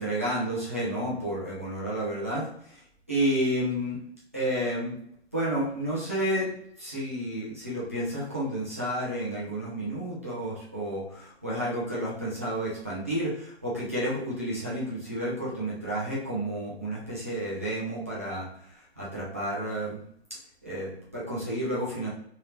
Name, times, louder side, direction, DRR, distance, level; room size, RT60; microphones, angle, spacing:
voice 1, 0.0-2.5 3.1-4.0 4.3-4.9 5.3-6.5 6.8-18.5 19.0-20.0 20.6-22.1, right 1 dB, 15° right, -8 dB, 0.4 m, -30 dB
3.2 x 2.7 x 3.0 m, 0.68 s
figure-of-eight pair, 150°, 33 cm